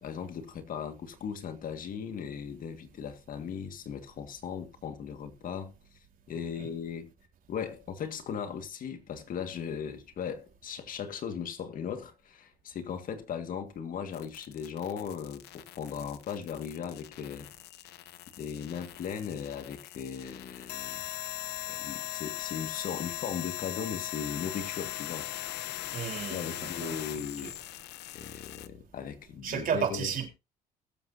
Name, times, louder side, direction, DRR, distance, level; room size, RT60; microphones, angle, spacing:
voice 1, 0.0-5.7 6.3-7.1 7.5-17.5 18.4-21.0 21.7-25.3 26.3-27.5 28.1-30.1, left 7 dB, 55° left, 1.9 m, -38 dB
sound 1, 14.1-28.7, left 15 dB, 80° left, 0.9 m, -40 dB
voice 2, 25.9-27.0 27.4-27.5 29.4-30.3, right 8 dB, 55° right, 4.1 m, -33 dB
21.5 x 7.9 x 2.8 m
cardioid pair, 110°, 17 cm